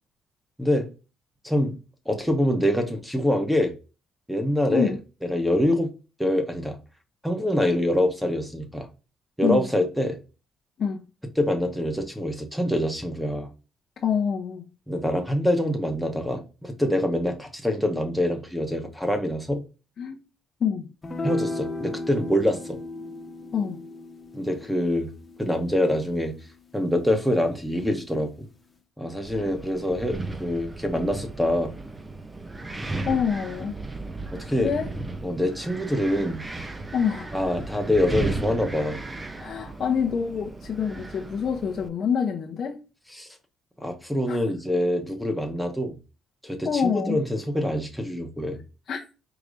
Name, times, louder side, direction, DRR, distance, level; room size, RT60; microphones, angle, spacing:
voice 1, 0.6-0.9 1.4-1.8 2.1-3.7 4.3-4.9 5.2-5.9 6.2-6.8 7.2-8.9 9.4-10.2 11.4-13.5 14.9-19.7 21.2-22.8 24.3-25.1 25.4-26.3 26.7-28.5 29.0-31.7 34.3-34.7 35.2-36.4 37.3-39.0 43.1-43.3 43.8-46.0 46.4-48.6, left 1 dB, ahead, 1.1 m, -25 dB
voice 2, 14.0-14.6 20.0-20.2 20.6-20.9 23.5-23.8 29.3-29.5 33.1-33.7 34.6-34.9 36.9-37.3 39.4-42.8 44.3-44.4 46.6-47.2 48.9-49.0, left 7 dB, 55° left, 0.7 m, -26 dB
sound 1, 21.0-27.6, left 2 dB, 20° left, 1.0 m, -36 dB
Wind, 29.3-41.9, right 2 dB, 20° right, 0.6 m, -35 dB
4.8 x 3.0 x 2.5 m
cardioid pair, 90°, 0 cm